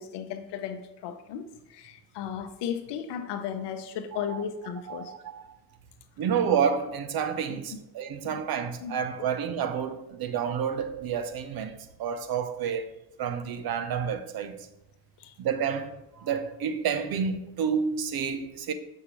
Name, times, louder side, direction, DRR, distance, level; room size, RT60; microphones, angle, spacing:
voice 1, 0.0-1.4 1.7-5.1 7.5-7.8 8.3-8.4 8.8-9.3 15.2-15.3, left 8 dB, 55° left, 0.9 m, -35 dB
voice 2, 4.1-4.4 4.9-5.4 6.2-14.5 15.4-18.7, right 7 dB, 45° right, 0.8 m, -30 dB
6.8 x 6.4 x 3.1 m
hypercardioid pair, 55°, 49 cm